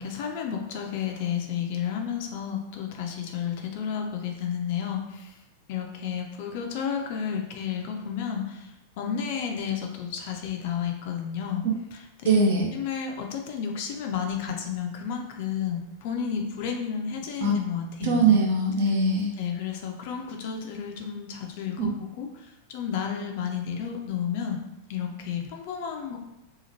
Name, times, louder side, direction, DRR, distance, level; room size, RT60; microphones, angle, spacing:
voice 1, 0.0-5.4 5.7-12.4 12.7-18.4 19.4-24.6 24.9-26.2, left 7 dB, 50° left, 2 dB, 0.4 m, -32 dB
voice 2, 12.2-12.7 17.4-17.5 18.0-19.3 21.8-21.9, right 3 dB, 55° right, 0 dB, 0.7 m, -21 dB
2.8 x 2.4 x 2.8 m, 0.94 s
figure-of-eight pair, 90°, 0 cm